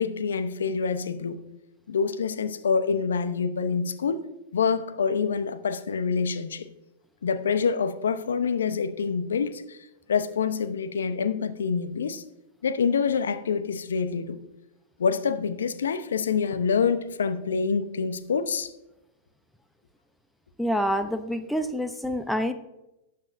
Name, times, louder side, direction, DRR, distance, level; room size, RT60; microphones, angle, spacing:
voice 1, 0.0-1.4 1.9-4.2 4.5-6.7 7.2-9.8 10.1-12.2 12.6-14.4 15.0-18.7, left 5 dB, 75° left, 0.8 m, -26 dB
voice 2, 20.6-22.5, equal, 5° left, 0.7 m, -27 dB
18.0 x 7.0 x 2.6 m
hypercardioid pair, 105°, 0 cm